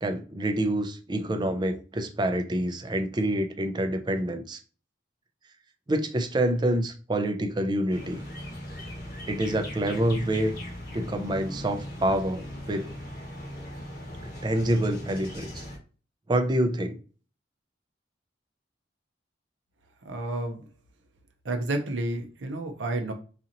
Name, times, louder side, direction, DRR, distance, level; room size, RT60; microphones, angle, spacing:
voice 1, 0.0-4.6 5.9-8.2 9.2-10.5 10.9-12.9 14.2-15.6 16.3-17.0, right 1 dB, 25° right, 0.4 m, -27 dB
sound 1, 7.9-15.8, left 1 dB, 55° left, 1.1 m, -39 dB
voice 2, 20.0-20.6 21.4-23.1, right 2 dB, 85° right, 0.6 m, -30 dB
4.0 x 2.8 x 2.5 m
head